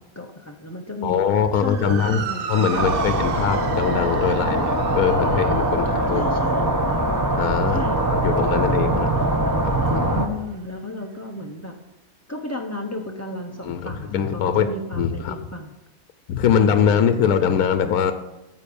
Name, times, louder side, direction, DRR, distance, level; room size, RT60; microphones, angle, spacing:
voice 1, 0.1-1.2 1.5-3.1 6.1-6.7 7.7-9.5 10.1-11.7 12.3-15.7 16.5-16.8 17.4-17.6, left 2 dB, 20° left, 1 dB, 0.4 m, -34 dB
voice 2, 1.0-6.2 7.4-7.8 8.1-9.2 9.6-10.2 13.6-14.7 14.9-15.4 16.3-18.1, left 7 dB, 75° left, 10 dB, 1.2 m, -22 dB
Motor vehicle (road) / Siren, 1.6-10.1, right 7 dB, 55° right, 0.6 m, -34 dB
sound 1, 2.7-10.3, right 1 dB, 15° right, 0.8 m, -22 dB
10.0 x 7.9 x 7.0 m, 0.97 s
omnidirectional pair, 1.6 m